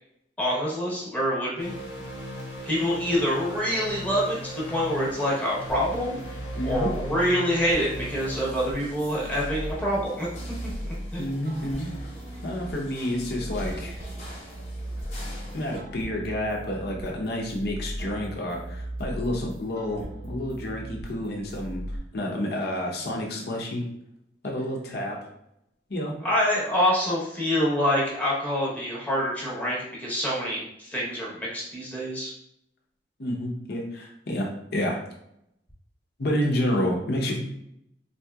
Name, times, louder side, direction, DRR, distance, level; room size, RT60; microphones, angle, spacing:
voice 1, 0.4-1.7 2.6-10.3 10.8-11.3 26.2-32.3, equal, 10° left, -6 dB, 0.9 m, -26 dB
sound 1, 1.6-8.5, left 1 dB, 90° left, 1.0 m, -38 dB
sound 2, 5.7-22.0, right 1 dB, 55° right, 0.7 m, -38 dB
voice 2, 6.6-6.9 11.2-11.9 12.4-14.0 15.5-23.8 24.4-25.2 25.9-26.1 33.2-35.0 36.2-37.4, left 1 dB, 65° left, 0 dB, 0.8 m, -29 dB
sound 3, 7.7-15.8, left 1 dB, 35° left, 1.1 m, -46 dB
4.1 x 2.8 x 2.3 m, 0.77 s
head